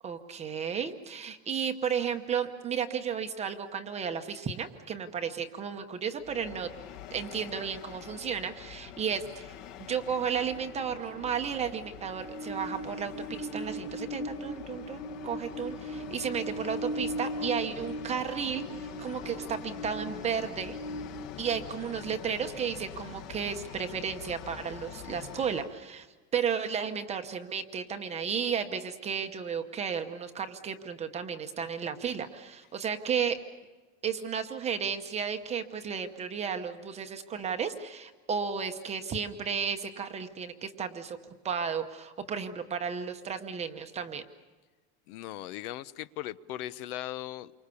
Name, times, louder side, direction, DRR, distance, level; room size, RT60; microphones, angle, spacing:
voice 1, 0.0-6.7 7.1-9.5 9.8-13.1 13.4-20.8 21.4-26.1 26.3-33.4 34.0-41.2 41.4-44.2, right 7 dB, 15° right, 6 dB, 0.8 m, -33 dB
Train, 6.2-25.7, left 2 dB, 50° left, 2.0 m, -40 dB
voice 2, 45.1-47.5, left 14 dB, 70° left, 16 dB, 0.9 m, -38 dB
29.0 x 25.0 x 7.0 m, 1.2 s
supercardioid pair, 175°, 46 cm